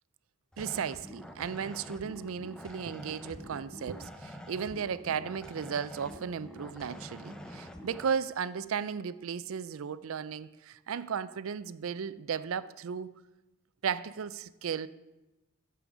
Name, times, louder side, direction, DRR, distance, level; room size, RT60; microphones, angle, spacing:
sound 1, 0.5-8.1, equal, 5° left, 0.6 m, -46 dB
voice 1, 0.6-13.1 13.8-14.9, right 7 dB, 75° right, 0.4 m, -35 dB
8.5 x 7.0 x 6.0 m
head